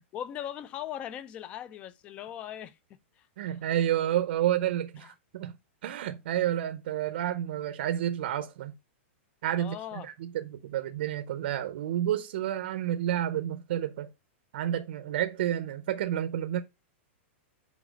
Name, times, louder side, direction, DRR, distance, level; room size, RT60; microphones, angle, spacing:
voice 1, 0.1-3.6 5.0-5.1 9.6-10.1, left 11 dB, 15° left, 0.3 m, -40 dB
voice 2, 3.4-5.5 5.8-8.7 9.4-14.1 14.5-16.6, right 11 dB, 55° right, 0.6 m, -30 dB
5.1 x 4.1 x 5.1 m
supercardioid pair, 170°, 7 cm